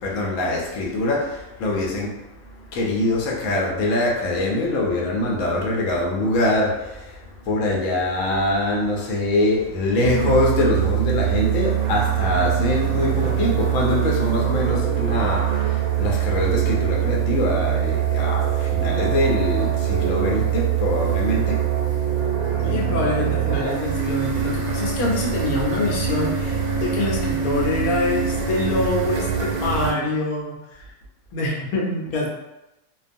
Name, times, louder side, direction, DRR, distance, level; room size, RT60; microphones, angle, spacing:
voice 1, 0.0-2.2 2.5-21.7, left 2 dB, 70° left, -2 dB, 0.9 m, -23 dB
sound 1, 10.0-29.9, right 9 dB, 80° right, 1.0 m, -23 dB
voice 2, 22.6-30.9 31.3-32.3, left 2 dB, 90° left, -2 dB, 1.1 m, -25 dB
2.4 x 2.3 x 2.5 m, 0.93 s
omnidirectional pair, 1.5 m